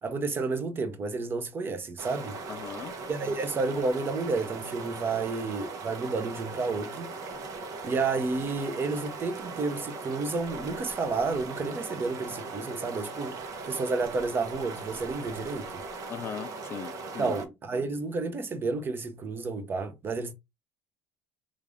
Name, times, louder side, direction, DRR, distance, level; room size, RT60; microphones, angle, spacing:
voice 1, 0.0-2.4 3.1-7.1 7.8-13.4 13.7-15.8 17.2-20.3, right 3 dB, 35° right, 0.8 m, -31 dB
sound 1, 2.0-17.5, right 3 dB, 60° right, 1.0 m, -39 dB
voice 2, 2.5-3.4 16.1-17.4, left 8 dB, 40° left, 0.5 m, -40 dB
3.3 x 2.5 x 3.4 m
supercardioid pair, 85°, 7 cm